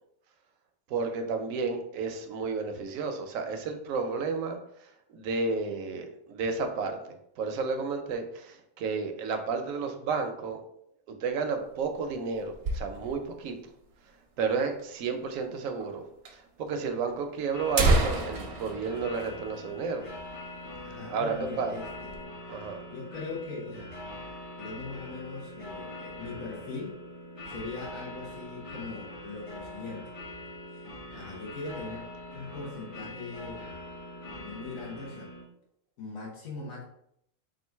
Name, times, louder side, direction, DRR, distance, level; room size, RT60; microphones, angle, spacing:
voice 1, 0.9-4.6 5.1-7.0 7.4-10.6 11.1-13.6 14.4-16.0 16.6-20.0 21.1-21.7 22.5-22.8, right 4 dB, 75° right, 6 dB, 1.0 m, -31 dB
sound 1, 11.6-13.4 13.7-13.8 14.0-14.1 14.8-14.9 15.8-15.9 16.2-16.3 17.1-17.2 17.5-20.1 20.5-20.6 21.0-21.3 21.7-22.2, right 2 dB, 55° right, 0.8 m, -29 dB
sound 2, 17.5-35.4, left 1 dB, 35° left, 0.6 m, -43 dB
voice 2, 20.8-22.2 22.6-23.9 24.6-27.0 27.5-30.1 30.7-33.6 34.3-35.3 36.0-36.8, left 3 dB, 80° left, -4 dB, 1.4 m, -40 dB
3.7 x 2.5 x 4.4 m, 0.74 s
omnidirectional pair, 1.4 m